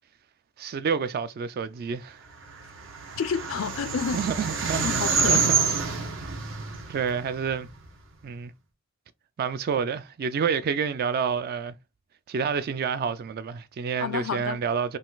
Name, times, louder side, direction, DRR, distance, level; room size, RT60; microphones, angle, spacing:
voice 1, 0.6-2.2 4.1-4.9 5.3-5.4 6.9-7.7 8.2-8.5 9.4-11.7 12.3-15.0, right 6 dB, 50° right, 0.3 m, -28 dB
sound 1, 2.5-7.9, right 5 dB, 70° right, 1.0 m, -27 dB
voice 2, 3.2-4.2 4.8-5.5 14.0-14.6, left 6 dB, 75° left, 0.4 m, -29 dB
4.0 x 2.3 x 3.8 m
head